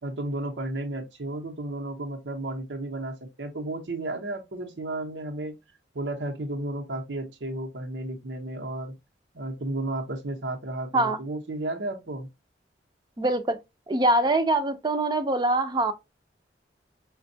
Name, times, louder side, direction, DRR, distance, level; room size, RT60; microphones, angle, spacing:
voice 1, 0.0-5.6 5.9-8.9 9.3-12.3, right 2 dB, 90° right, 0.8 m, -33 dB
voice 2, 13.2-13.6 13.9-15.9, right 2 dB, 25° right, 0.5 m, -23 dB
5.1 x 2.2 x 2.6 m
head